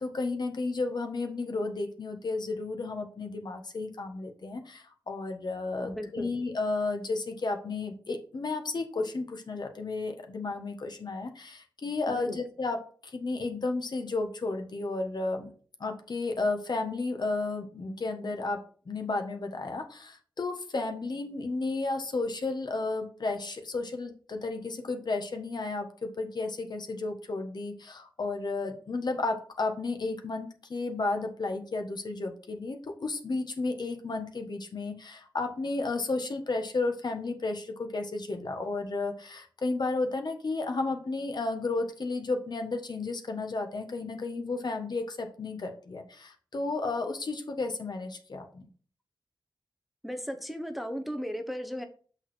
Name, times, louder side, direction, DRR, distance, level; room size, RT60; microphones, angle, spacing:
voice 1, 0.0-15.5 15.8-48.7, left 3 dB, 60° left, 5 dB, 1.4 m, -33 dB
voice 2, 5.8-6.3 12.1-12.4 50.0-51.8, equal, ahead, 6 dB, 0.9 m, -36 dB
6.5 x 5.7 x 4.6 m, 0.43 s
wide cardioid pair, 85°, 8 cm